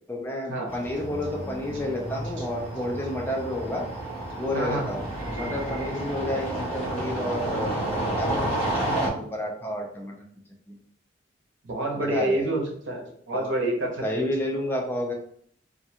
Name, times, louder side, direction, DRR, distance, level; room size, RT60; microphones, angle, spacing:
voice 1, 0.1-3.9 4.4-10.3 10.7-10.8 12.0-12.5 13.3-13.5 14.0-15.1, left 1 dB, 10° left, 0 dB, 0.4 m, -31 dB
sound 1, 0.7-9.1, right 1 dB, 35° left, 0.8 m, -31 dB
voice 2, 4.5-4.9 11.6-14.2, right 1 dB, 75° right, 0 dB, 0.7 m, -28 dB
2.4 x 2.2 x 2.7 m, 0.64 s
head